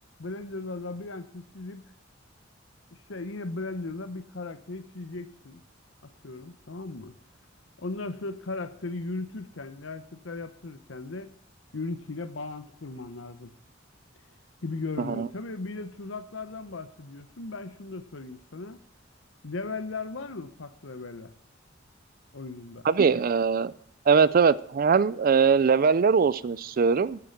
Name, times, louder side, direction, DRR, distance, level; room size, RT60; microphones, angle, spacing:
voice 1, 0.2-1.8 3.1-5.6 6.2-7.2 7.8-11.3 11.7-13.5 14.6-18.8 19.4-21.3 22.3-22.9, left 3 dB, 85° left, 12 dB, 0.9 m, -37 dB
voice 2, 22.8-23.7 24.1-27.2, right 5 dB, 45° right, 18 dB, 0.4 m, -21 dB
9.7 x 8.6 x 7.2 m, 0.67 s
head